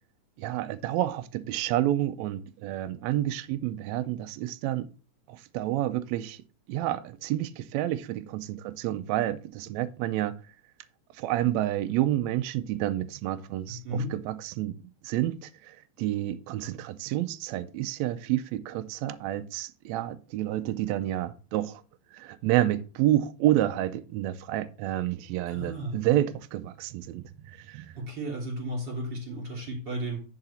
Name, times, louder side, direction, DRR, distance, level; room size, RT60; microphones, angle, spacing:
voice 1, 0.4-4.9 5.3-6.4 6.7-10.4 11.1-21.8 22.1-27.9, right 13 dB, 80° right, 1.7 m, -29 dB
voice 2, 13.7-14.1 25.5-26.0 28.0-30.2, right 1 dB, 35° right, 3.5 m, -34 dB
10.0 x 4.9 x 4.2 m
omnidirectional pair, 3.6 m